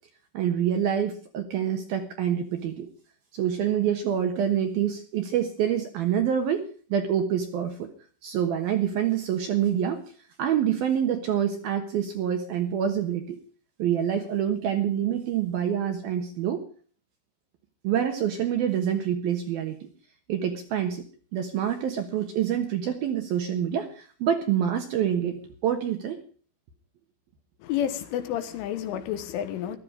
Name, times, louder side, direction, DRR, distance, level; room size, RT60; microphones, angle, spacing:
voice 1, 0.3-2.9 3.3-7.9 8.2-10.0 10.4-13.4 13.8-16.7 17.8-19.9 20.3-21.0 21.3-26.2, right 9 dB, 65° right, 6 dB, 2.6 m, -26 dB
voice 2, 27.6-29.8, left 10 dB, 75° left, 10 dB, 3.8 m, -30 dB
15.5 x 13.0 x 5.1 m, 0.42 s
omnidirectional pair, 5.7 m